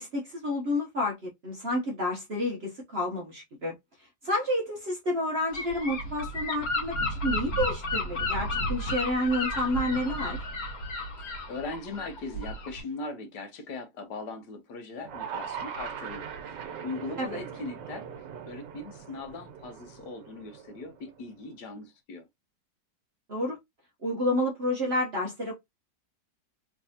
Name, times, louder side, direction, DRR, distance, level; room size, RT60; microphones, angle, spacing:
voice 1, 0.0-3.7 4.2-10.5 17.2-17.4 23.3-23.6 24.0-25.6, left 1 dB, 45° right, 0.9 m, -30 dB
Gull seagull / Wind, 5.5-12.8, left 1 dB, 55° left, 1.6 m, -32 dB
voice 2, 11.2-16.5 16.8-18.0 18.5-22.3, left 3 dB, 70° left, 1.4 m, -39 dB
sound 1, 15.0-21.3, right 7 dB, 80° right, 1.5 m, -41 dB
3.3 x 3.2 x 2.7 m
omnidirectional pair, 1.9 m